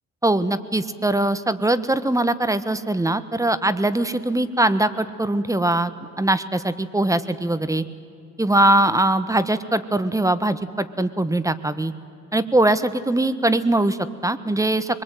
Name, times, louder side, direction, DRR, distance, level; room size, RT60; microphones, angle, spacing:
voice 1, 0.2-7.8 8.4-11.9 12.3-15.0, right 1 dB, 10° right, 13 dB, 1.3 m, -21 dB
25.0 x 22.0 x 9.2 m, 2.4 s
cardioid pair, 90°, 30 cm